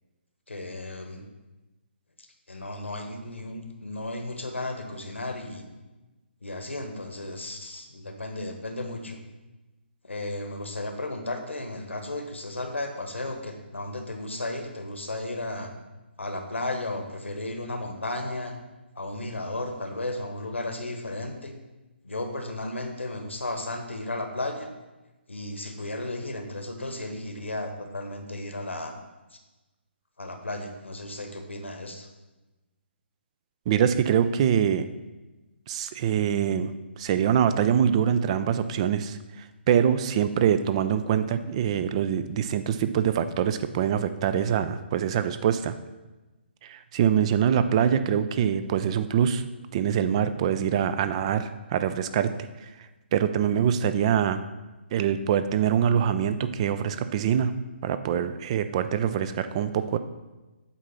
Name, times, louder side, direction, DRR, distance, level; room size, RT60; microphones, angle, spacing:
voice 1, 0.5-1.2 2.2-5.6 6.4-9.2 10.0-15.7 16.2-18.5 18.9-21.5 22.0-24.7 25.3-29.0 29.3-29.4 30.2-32.1, left 2 dB, 90° left, 5 dB, 1.2 m, -34 dB
voice 2, 33.7-34.9 35.7-36.7 37.0-39.2 39.7-45.7 46.6-49.4 49.7-52.3 52.6-52.7 53.1-54.4 54.9-57.5 57.8-60.0, right 8 dB, 30° right, 12 dB, 0.4 m, -24 dB
8.3 x 3.8 x 5.7 m, 1.1 s
figure-of-eight pair, 145°, 6 cm